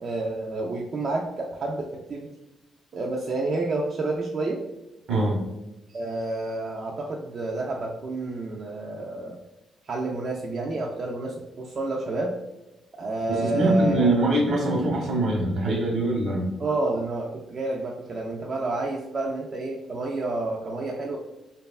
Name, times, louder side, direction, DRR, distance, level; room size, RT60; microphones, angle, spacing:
voice 1, 0.0-2.3 2.9-4.6 5.9-9.4 9.8-12.3 13.0-14.2 16.6-21.2, right 2 dB, 45° right, -2 dB, 0.3 m, -29 dB
voice 2, 5.1-5.4 13.3-16.4, right 1 dB, 75° right, -1 dB, 0.9 m, -23 dB
3.0 x 2.3 x 2.3 m, 0.99 s
cardioid pair, 120°, 0 cm